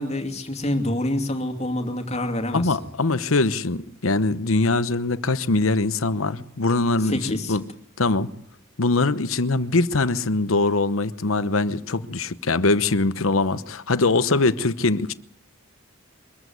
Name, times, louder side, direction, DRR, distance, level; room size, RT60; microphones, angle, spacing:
voice 1, 0.0-2.8 7.0-7.6, left 1 dB, 30° left, 2.6 m, -27 dB
voice 2, 2.5-7.6 8.0-8.3 8.8-15.1, left 3 dB, 80° left, 1.0 m, -22 dB
23.5 x 14.5 x 9.4 m
head